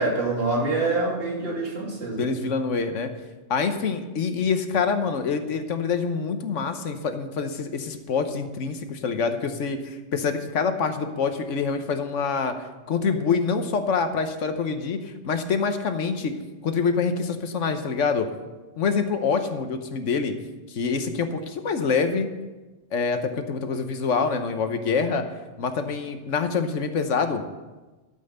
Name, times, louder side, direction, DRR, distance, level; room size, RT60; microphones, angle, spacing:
voice 1, 0.0-2.3, right 2 dB, 55° right, -2 dB, 2.5 m, -25 dB
voice 2, 2.1-3.1 3.5-12.5 12.9-16.3 16.6-18.3 18.8-20.3 20.7-22.3 22.9-25.2 25.6-27.4, left 5 dB, 90° left, 8 dB, 1.3 m, -26 dB
12.5 x 5.6 x 7.9 m, 1.2 s
omnidirectional pair, 1.2 m